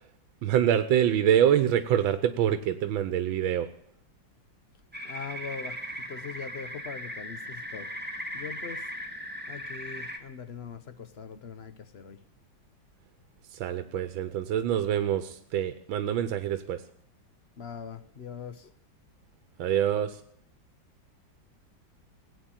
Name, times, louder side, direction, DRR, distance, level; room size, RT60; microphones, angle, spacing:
voice 1, 0.4-3.7 13.6-16.8 19.6-20.2, right 10 dB, 90° right, 11 dB, 1.6 m, -25 dB
sound 1, 4.9-10.2, equal, 5° right, 1.6 m, -38 dB
voice 2, 5.0-5.8 6.1-7.9 8.3-8.8 9.5-12.2 17.6-18.7, left 6 dB, 45° left, 12 dB, 0.9 m, -41 dB
17.0 x 9.1 x 8.9 m, 0.69 s
omnidirectional pair, 2.1 m